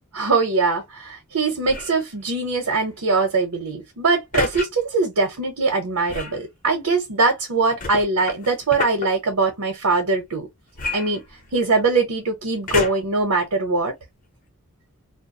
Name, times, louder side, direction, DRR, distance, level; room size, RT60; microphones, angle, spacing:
voice 1, 0.1-10.5 10.9-11.2 11.5-13.9, right 3 dB, 85° right, 0.8 m, -22 dB
sound 1, 1.6-2.0 4.3-4.7 6.1-6.4 7.8-9.1 10.8-11.7 12.7-13.2 13.9-14.0, left 3 dB, 35° left, 0.6 m, -29 dB
2.3 x 2.1 x 2.6 m
head